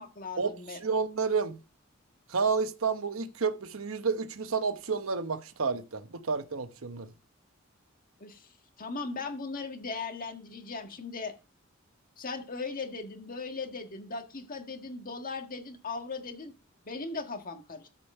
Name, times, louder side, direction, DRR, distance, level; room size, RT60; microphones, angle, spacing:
voice 1, 0.0-0.8 8.2-8.5 8.8-11.3 12.2-16.5 16.8-17.9, left 4 dB, 45° left, 1.6 m, -38 dB
voice 2, 0.8-1.6 2.3-7.1, right 5 dB, 80° right, 0.9 m, -30 dB
13.5 x 5.1 x 5.4 m
head